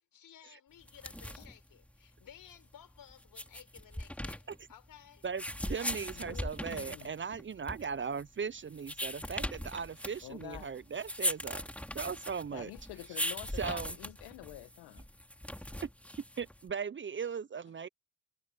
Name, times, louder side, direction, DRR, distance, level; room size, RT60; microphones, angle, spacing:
voice 1, 0.1-5.3, left 9 dB, 55° left, 4.8 m, -56 dB
sound 1, 0.8-16.7, left 1 dB, 5° left, 3.1 m, -40 dB
voice 2, 5.2-11.6 11.9-12.7 13.6-13.9 15.8-15.9 16.4-17.9, right 6 dB, 30° right, 0.8 m, -38 dB
voice 3, 6.1-7.1 10.2-10.8 12.5-15.1, left 18 dB, 75° left, 1.6 m, -48 dB
supercardioid pair, 70°, 39 cm